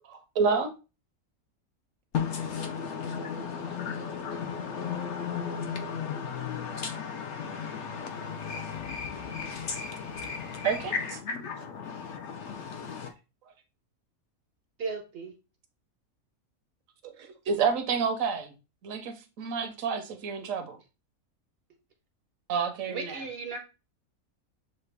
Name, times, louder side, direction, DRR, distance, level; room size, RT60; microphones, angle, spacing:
voice 1, 0.1-0.7 3.7-3.8 10.6-10.9 17.0-18.5 18.8-20.8 22.5-23.2, right 5 dB, 70° right, 1.0 m, -29 dB
voice 2, 2.1-13.1, left 6 dB, 65° left, 0.7 m, -35 dB
voice 3, 14.8-15.3 22.9-23.6, right 4 dB, 55° right, 0.7 m, -35 dB
6.4 x 2.2 x 3.3 m
omnidirectional pair, 1.5 m